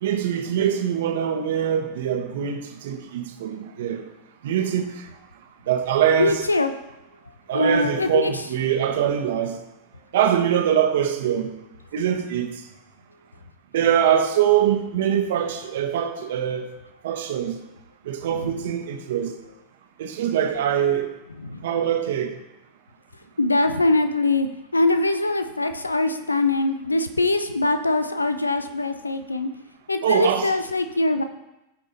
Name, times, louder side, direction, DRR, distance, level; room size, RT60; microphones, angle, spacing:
voice 1, 0.0-4.1 4.4-5.1 5.7-6.4 7.5-9.6 10.1-11.5 11.9-12.5 13.7-16.7 17.0-17.6 18.0-19.3 20.0-21.1 21.6-22.3 30.0-30.5, right 9 dB, 55° right, 1.2 m, -23 dB
voice 2, 6.2-6.7 7.5-8.3 18.3-18.6 21.4-21.6 23.4-29.5 29.9-31.2, left 2 dB, 80° left, 0.6 m, -22 dB
15.5 x 5.2 x 4.1 m
figure-of-eight pair, 90°, 0 cm